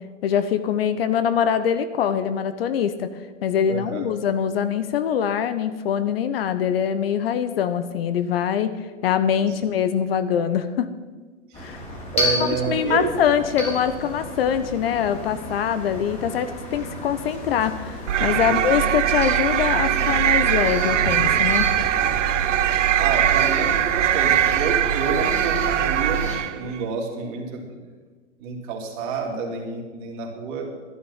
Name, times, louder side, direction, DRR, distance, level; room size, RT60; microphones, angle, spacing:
voice 1, 0.2-3.1 3.4-8.7 9.0-10.9 11.6-11.8 12.7-21.7, left 8 dB, 50° left, 12 dB, 0.9 m, -23 dB
voice 2, 3.7-4.0 9.4-9.6 11.5-11.8 12.1-13.1 18.4-18.6 23.0-27.7 28.4-30.7, right 4 dB, 40° right, 0 dB, 3.0 m, -29 dB
sound 1, 11.5-26.4, left 1 dB, 15° left, 3.4 m, -33 dB
sound 2, 18.1-26.6, right 10 dB, 70° right, 0.7 m, -21 dB
12.0 x 11.0 x 5.6 m, 1.4 s
hypercardioid pair, 125°, 38 cm